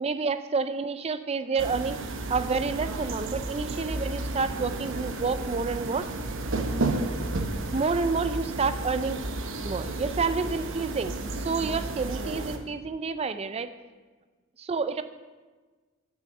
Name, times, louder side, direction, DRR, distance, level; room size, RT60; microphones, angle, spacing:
voice 1, 0.0-2.0 2.3-6.1 7.7-9.2 9.6-13.7 14.6-15.0, right 4 dB, 30° right, 11 dB, 0.4 m, -29 dB
sound 1, 1.6-12.6, right 2 dB, 60° right, 0.8 m, -32 dB
6.3 x 6.3 x 7.0 m, 1.3 s
head